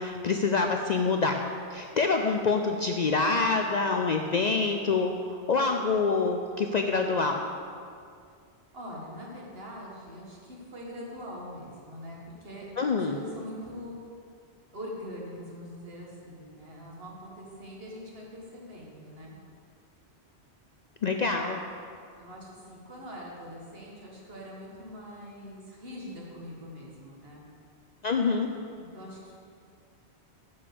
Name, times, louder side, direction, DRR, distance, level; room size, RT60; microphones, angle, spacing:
voice 1, 0.0-1.4 1.7-7.4 12.8-13.2 21.0-21.6 28.0-28.5, left 4 dB, 55° left, 4 dB, 0.5 m, -26 dB
voice 2, 8.7-12.7 12.9-14.0 14.7-19.4 22.2-27.4 28.8-29.3, equal, 60° right, -3 dB, 2.1 m, -43 dB
10.0 x 5.5 x 6.8 m, 2.3 s
omnidirectional pair, 1.1 m